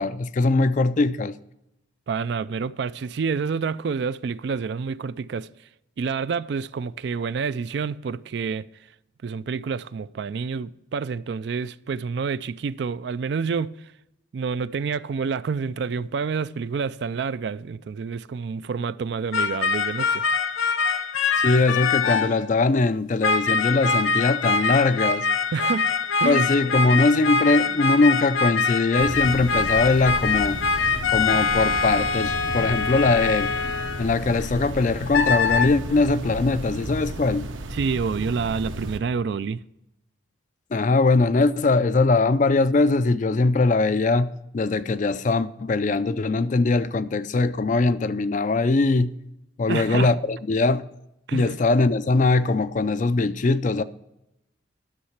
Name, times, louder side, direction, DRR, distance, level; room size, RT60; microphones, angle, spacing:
voice 1, 0.0-1.3 21.4-25.3 26.2-30.6 31.1-33.5 34.0-37.5 40.7-49.2 49.6-50.9 51.3-53.8, left 3 dB, 40° left, 0.4 m, -21 dB
voice 2, 2.1-5.5 6.0-8.7 9.2-13.7 14.3-20.2 25.5-25.9 26.2-26.5 37.7-39.6 49.7-50.1 51.3-51.5, right 5 dB, 55° right, 0.3 m, -28 dB
sound 1, 19.3-22.4 23.2-34.4 35.1-35.7, left 4 dB, 90° left, 0.8 m, -24 dB
sound 2, 29.0-39.0, right 1 dB, 80° right, 1.0 m, -34 dB
11.5 x 6.5 x 5.8 m
head